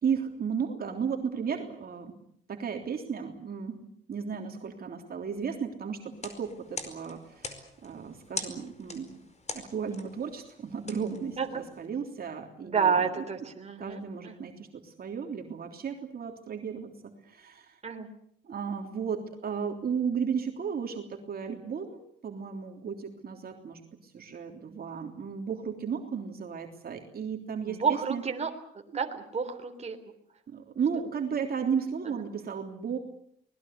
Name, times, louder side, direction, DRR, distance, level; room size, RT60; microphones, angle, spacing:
voice 1, 0.0-2.2 2.5-3.8 4.1-9.1 9.5-13.3 13.8-17.8 18.5-28.2 30.5-33.0, right 6 dB, 50° right, 3 dB, 3.4 m, -34 dB
sound 1, 6.1-11.9, left 3 dB, 35° left, 4.8 m, -43 dB
voice 2, 12.6-14.3 17.8-18.1 27.7-28.5 28.9-30.0 32.0-32.1, right 6 dB, 35° right, 4 dB, 3.6 m, -30 dB
24.5 x 20.0 x 8.3 m, 0.68 s
cardioid pair, 90°, 20 cm